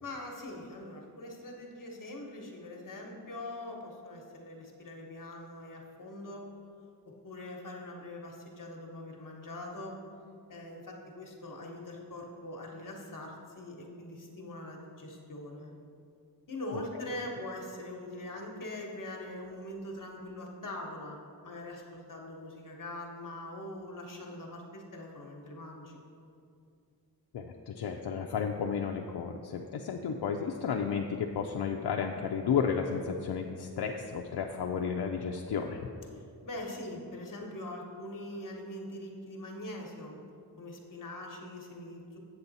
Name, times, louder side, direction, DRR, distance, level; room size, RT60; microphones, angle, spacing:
voice 1, 0.0-6.5 7.2-10.0 10.5-15.7 16.5-26.0 36.1-40.2 40.6-42.2, left 1 dB, 55° left, 0 dB, 1.2 m, -42 dB
voice 2, 27.3-35.9, left 6 dB, 80° left, 2 dB, 0.5 m, -32 dB
8.0 x 6.9 x 4.0 m, 2.4 s
wide cardioid pair, 85°, 39 cm